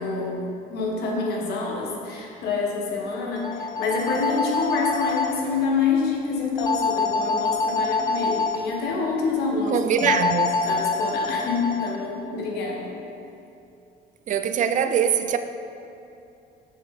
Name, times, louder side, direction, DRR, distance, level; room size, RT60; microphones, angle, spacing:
voice 1, 0.0-10.2 10.6-13.0, left 4 dB, 75° left, -1 dB, 1.5 m, -27 dB
sound 1, 3.4-5.3 6.6-8.6 10.0-12.0, left 4 dB, 25° left, 0.5 m, -25 dB
voice 2, 9.7-10.6 14.3-15.4, right 8 dB, 50° right, 9 dB, 0.5 m, -22 dB
7.4 x 6.9 x 4.2 m, 2.8 s
cardioid pair, 110°, 17 cm